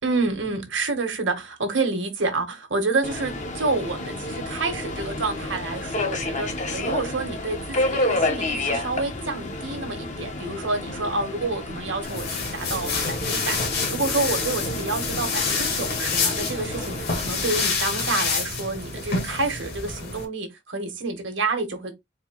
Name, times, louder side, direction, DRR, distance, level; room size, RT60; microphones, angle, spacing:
voice 1, 0.0-13.6 13.9-21.9, right 3 dB, 70° right, 1.3 m, -28 dB
Subway metro underground, 3.0-17.6, left 2 dB, 40° left, 0.9 m, -30 dB
sound 1, 12.0-20.3, left 4 dB, 55° left, 1.6 m, -27 dB
4.3 x 2.2 x 4.5 m
head